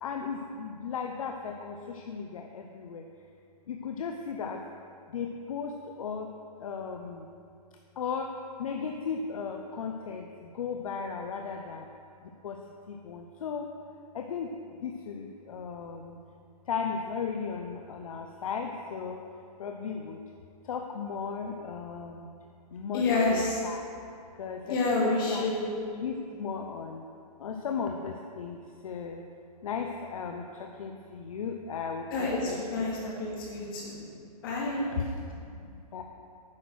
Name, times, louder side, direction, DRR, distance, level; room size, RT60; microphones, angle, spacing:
voice 1, 0.0-3.1 3.7-4.6 5.1-6.3 6.6-7.3 8.0-11.9 12.2-12.6 12.9-13.7 14.1-16.2 16.7-19.2 19.6-20.2 20.6-22.3 22.7-23.8 24.4-25.5 26.0-27.1 27.4-29.2 29.6-32.9 33.2-33.6 33.9-34.5 34.9-36.0, left 6 dB, 55° left, 3 dB, 0.7 m, -36 dB
voice 2, 22.9-23.6 24.7-25.6 32.1-34.0 34.4-34.9, left 3 dB, 35° left, -4 dB, 2.4 m, -28 dB
9.8 x 6.1 x 6.3 m, 2.4 s
hypercardioid pair, 175°, 21 cm